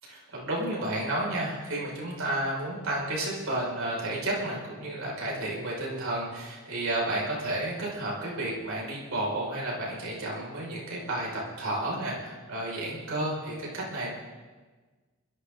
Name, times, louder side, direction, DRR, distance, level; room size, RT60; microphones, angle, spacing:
voice 1, 0.3-14.1, right 1 dB, 75° right, -4 dB, 5.7 m, -31 dB
21.5 x 13.5 x 3.9 m, 1.3 s
head